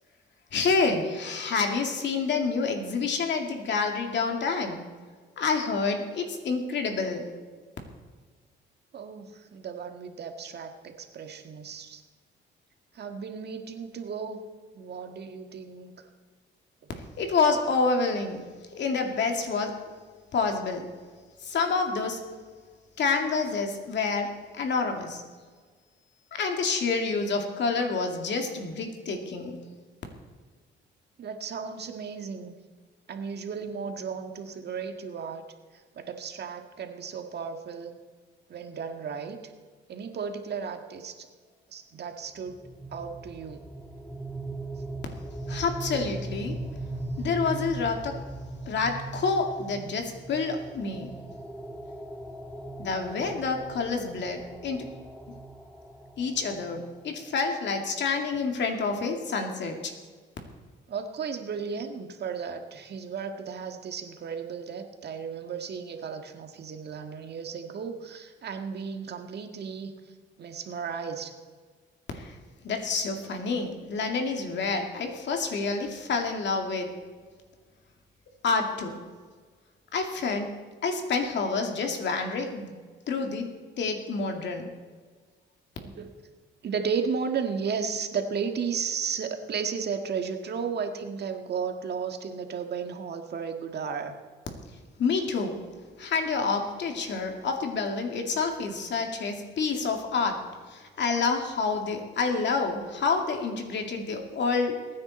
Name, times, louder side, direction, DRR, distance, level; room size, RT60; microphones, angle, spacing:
voice 1, 0.5-4.8 5.4-7.3 17.2-18.4 18.7-19.8 20.3-20.9 21.4-22.2 23.0-25.2 26.3-29.6 45.5-46.6 47.2-48.2 48.7-51.1 52.8-54.9 56.2-59.9 72.1-72.4 72.6-76.9 78.4-79.0 79.9-80.6 80.8-82.7 83.1-83.5 83.8-84.7 95.0-95.6 96.0-104.8, left 4 dB, 65° left, 3 dB, 2.4 m, -28 dB
voice 2, 8.9-12.0 12.9-14.4 14.7-15.9 31.2-32.5 33.1-35.4 35.9-37.9 38.5-39.4 39.9-41.3 41.7-42.6 42.9-43.6 60.9-69.9 70.4-71.3 85.8-86.1 86.6-94.1, right 6 dB, 55° right, 5 dB, 1.7 m, -34 dB
sound 1, 42.5-57.3, right 2 dB, 5° left, 1.6 m, -39 dB
22.0 x 9.7 x 4.2 m, 1.5 s
cardioid pair, 90°, 20 cm